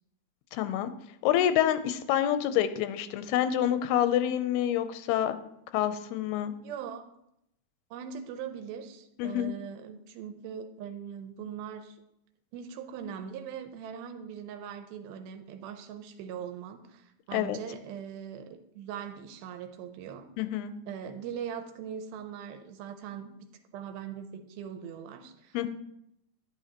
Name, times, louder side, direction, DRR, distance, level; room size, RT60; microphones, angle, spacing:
voice 1, 0.5-0.9 1.2-5.4 5.7-6.5 9.2-9.5 17.3-17.6 20.4-20.7 25.5-25.7, left 11 dB, 90° left, 11 dB, 2.6 m, -27 dB
voice 2, 6.6-7.1 7.9-12.0 12.5-20.3 20.9-23.3 23.7-25.7, right 8 dB, 80° right, 7 dB, 2.5 m, -41 dB
10.5 x 9.9 x 2.9 m, 0.80 s
omnidirectional pair, 4.5 m